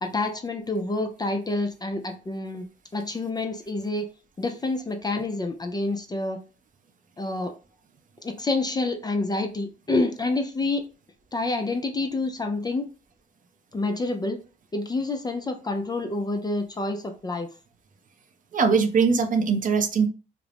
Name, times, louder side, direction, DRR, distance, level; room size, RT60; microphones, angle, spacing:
voice 1, 0.0-2.6 2.9-4.1 4.4-6.4 7.2-7.6 8.2-10.8 11.3-12.9 13.7-14.4 14.7-17.5, left 2 dB, 20° left, 0.4 m, -28 dB
voice 2, 18.5-20.1, right 5 dB, 40° right, 0.5 m, -21 dB
2.4 x 2.0 x 3.2 m
cardioid pair, 90°, 20 cm